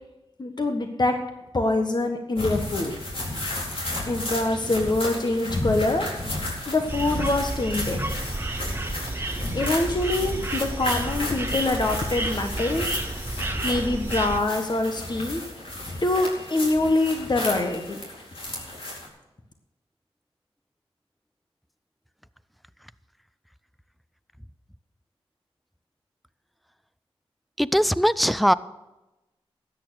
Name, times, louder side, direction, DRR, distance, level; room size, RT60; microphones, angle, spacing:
voice 1, 0.4-1.1 1.5-2.9 4.0-6.1 6.7-8.0 9.1-12.9 13.6-15.4 16.0-18.0 18.6-18.7, left 2 dB, 45° left, 5 dB, 1.4 m, -25 dB
sound 1, 2.4-19.1, left 1 dB, 60° left, 4.4 m, -33 dB
sound 2, 6.9-14.4, right 2 dB, 20° right, 1.5 m, -31 dB
voice 2, 27.6-28.5, equal, ahead, 15 dB, 0.6 m, -20 dB
13.5 x 9.1 x 6.4 m, 1.0 s
cardioid pair, 45°, 10 cm